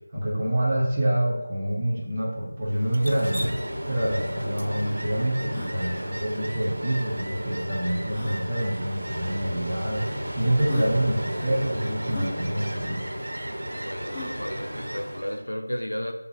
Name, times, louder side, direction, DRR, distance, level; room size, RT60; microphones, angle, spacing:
voice 1, 0.1-3.4 3.8-13.1, right 1 dB, 20° right, -7 dB, 1.2 m, -26 dB
Ocean, 2.7-15.4, equal, 65° right, 0.8 m, -33 dB
Drip, 2.9-7.1, equal, 85° right, 0.3 m, -36 dB
sound 1, 5.5-5.8 7.1-7.2 8.1-8.4 9.4-9.5 10.2-10.3 10.6-10.9 12.1-12.3 14.1-14.4, left 2 dB, 5° left, 0.8 m, -37 dB
voice 2, 13.8-16.1, equal, 90° left, 4 dB, 0.6 m, -33 dB
6.2 x 2.2 x 3.4 m, 0.95 s
figure-of-eight pair, 170°, 0 cm